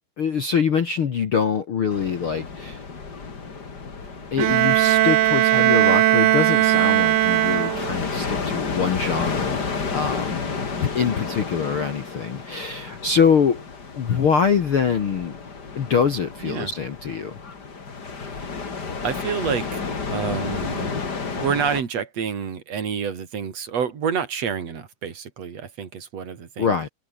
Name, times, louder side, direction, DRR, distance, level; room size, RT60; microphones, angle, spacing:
voice 1, 0.2-2.8 4.3-9.6 9.9-10.4 10.8-13.6 13.9-15.4 15.7-17.3 26.6-26.9, left 6 dB, 65° left, 1.3 m, -24 dB
sound 1, 1.9-21.8, left 4 dB, 30° left, 2.6 m, -32 dB
Bowed string instrument, 4.4-8.1, right 15 dB, 80° right, 1.8 m, -18 dB
voice 2, 19.0-21.0 21.3-26.8, right 7 dB, 40° right, 3.7 m, -28 dB
omnidirectional pair, 4.9 m